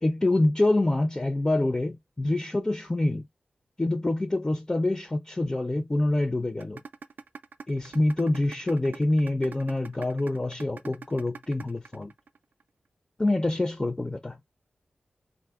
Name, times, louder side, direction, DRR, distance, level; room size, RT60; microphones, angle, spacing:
voice 1, 0.0-3.3 3.8-6.8 7.7-12.1 13.2-14.4, left 2 dB, 20° left, 0.4 m, -26 dB
sound 1, 6.6-12.6, right 5 dB, 70° right, 0.4 m, -42 dB
3.6 x 2.1 x 2.3 m
cardioid pair, 50°, 3 cm